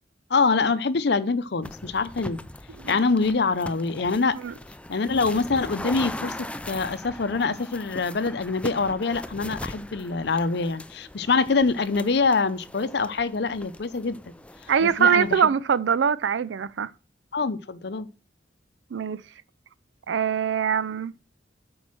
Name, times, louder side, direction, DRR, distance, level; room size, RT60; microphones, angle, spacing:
voice 1, 0.3-2.4 2.9-4.4 4.9-6.4 6.7-14.3 14.8-15.4 17.3-18.1, left 4 dB, 65° left, 0.6 m, -25 dB
sound 1, 1.6-15.4, left 1 dB, 5° left, 0.4 m, -40 dB
voice 2, 14.7-16.9 18.9-19.2 20.1-21.1, right 7 dB, 85° right, 0.4 m, -23 dB
8.6 x 4.7 x 6.1 m
head